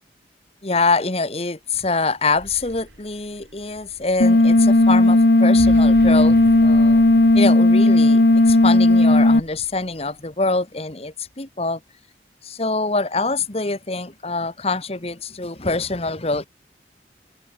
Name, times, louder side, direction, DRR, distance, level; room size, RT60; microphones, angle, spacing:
voice 1, 0.6-7.0 7.3-11.8 12.4-16.5, left 3 dB, 35° left, 1.5 m, -25 dB
sound 1, 2.1-10.2, equal, 70° right, 6.6 m, -41 dB
sound 2, 4.2-9.4, left 2 dB, 60° left, 1.0 m, -14 dB
open air
head